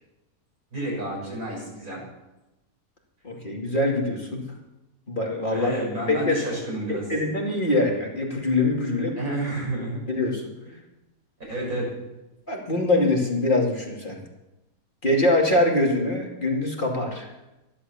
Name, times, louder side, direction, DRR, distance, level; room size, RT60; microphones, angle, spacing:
voice 1, 0.7-2.0 5.5-7.0 9.2-10.0 11.5-12.0, right 1 dB, 85° right, -4 dB, 7.2 m, -30 dB
voice 2, 3.2-4.4 5.1-5.7 6.1-6.4 6.9-9.2 10.1-10.4 12.5-14.2 15.0-17.3, left 2 dB, 35° left, -1 dB, 2.7 m, -23 dB
14.5 x 11.5 x 6.9 m, 0.99 s
omnidirectional pair, 1.5 m